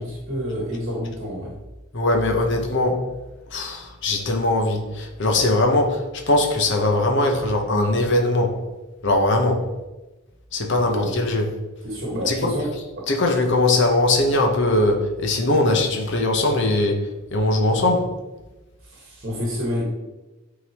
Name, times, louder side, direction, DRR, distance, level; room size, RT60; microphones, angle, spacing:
voice 1, 0.0-1.5 10.8-11.1 11.8-12.7 13.0-13.1 18.8-19.8, equal, 40° right, -3 dB, 1.5 m, -28 dB
voice 2, 1.9-3.0 3.5-8.6 9.0-9.7 10.5-11.5 12.3-12.5 13.1-17.0 17.3-18.1, left 2 dB, 55° left, 2 dB, 0.9 m, -20 dB
9.2 x 3.9 x 2.9 m, 1.1 s
head